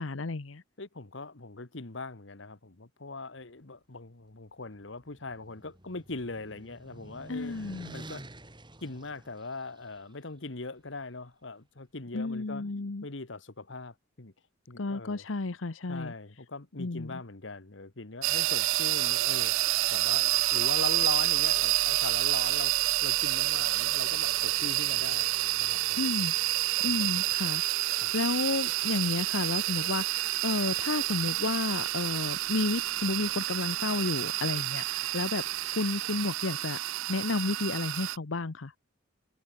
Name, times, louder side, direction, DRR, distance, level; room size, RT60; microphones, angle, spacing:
voice 1, 0.0-0.6 7.3-7.9 12.1-13.0 14.8-16.1 16.8-17.1 26.0-26.3 26.8-35.5 35.7-36.8 37.1-38.7, left 3 dB, 85° left, 0.9 m, -32 dB
voice 2, 0.8-7.6 7.9-8.2 8.8-12.6 13.0-14.3 14.7-15.2 15.9-19.6 19.9-25.3 25.6-26.0 26.9-27.2 28.0-28.1, left 3 dB, 65° left, 1.5 m, -41 dB
sound 1, 4.7-10.0, right 1 dB, 25° right, 4.7 m, -48 dB
sound 2, 18.2-38.2, right 17 dB, 85° right, 0.4 m, -29 dB
head